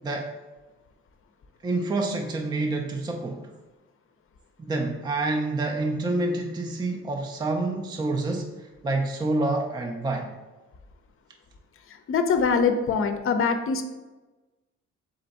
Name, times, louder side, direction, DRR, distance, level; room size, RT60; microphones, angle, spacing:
voice 1, 1.6-3.5 4.6-10.3, right 2 dB, 15° right, 2 dB, 0.4 m, -28 dB
voice 2, 12.1-13.8, left 5 dB, 45° left, 7 dB, 0.6 m, -23 dB
3.9 x 3.3 x 4.0 m, 1.2 s
cardioid pair, 90°, 30 cm